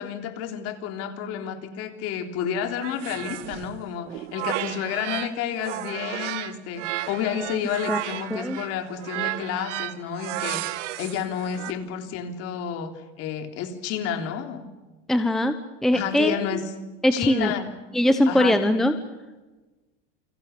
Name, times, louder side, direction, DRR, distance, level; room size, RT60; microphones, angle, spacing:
voice 1, 0.0-10.7 11.0-12.9 13.2-14.7 15.9-16.6 17.1-17.7 18.3-18.6, left 8 dB, 40° left, 6 dB, 3.7 m, -30 dB
sound 1, 2.8-5.3 5.6-11.7, right 15 dB, 75° right, 1.8 m, -33 dB
voice 2, 15.1-16.6 17.0-17.5 17.9-18.9, left 1 dB, ahead, 8 dB, 1.0 m, -21 dB
29.5 x 25.5 x 6.9 m, 1.2 s
supercardioid pair, 160°, 36 cm